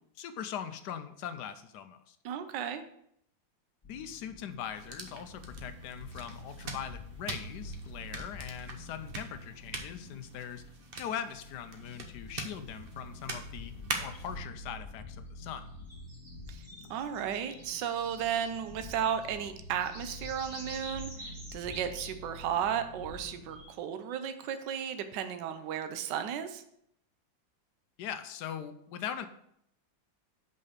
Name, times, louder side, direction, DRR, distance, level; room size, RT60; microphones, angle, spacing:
voice 1, 0.2-2.2 3.9-10.6 11.0-13.7 14.0-15.7 28.0-29.3, left 9 dB, 70° left, 10 dB, 1.1 m, -41 dB
voice 2, 2.2-2.8 16.5-16.6 16.9-26.6, right 8 dB, 70° right, 9 dB, 1.3 m, -34 dB
sound 1, 3.8-23.6, left 1 dB, 10° left, 2.6 m, -47 dB
sound 2, 4.8-14.4, right 3 dB, 45° right, 0.7 m, -43 dB
sound 3, 15.4-19.3 19.6-22.6 23.5-24.5, equal, 20° right, 2.3 m, -49 dB
5.6 x 5.3 x 6.6 m, 0.72 s
omnidirectional pair, 2.1 m